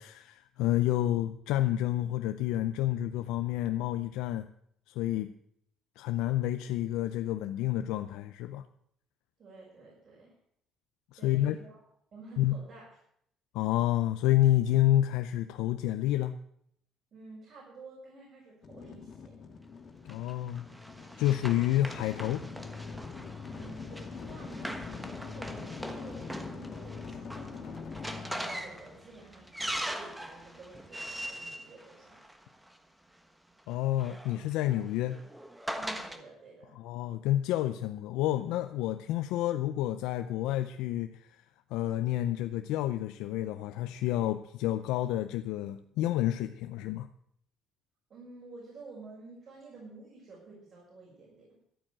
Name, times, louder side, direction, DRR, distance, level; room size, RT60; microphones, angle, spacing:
voice 1, 0.0-4.5 4.9-5.3 6.0-8.6 11.1-11.6 12.4-12.5 13.5-16.3 20.0-20.7 21.2-22.4 33.7-35.2 36.8-41.3 41.7-47.1, left 14 dB, 90° left, 9 dB, 0.6 m, -29 dB
voice 2, 9.4-10.3 11.1-11.8 12.1-12.8 17.1-19.4 23.5-29.5 29.8-32.2 35.8-36.7 48.1-51.5, right 3 dB, 50° right, -5 dB, 6.1 m, -50 dB
sound 1, 18.6-29.6, left 5 dB, 45° left, 2.5 m, -44 dB
Run, 20.1-32.7 33.7-36.2, equal, 5° right, 1.3 m, -41 dB
12.5 x 8.8 x 7.5 m, 0.69 s
cardioid pair, 105°, 0 cm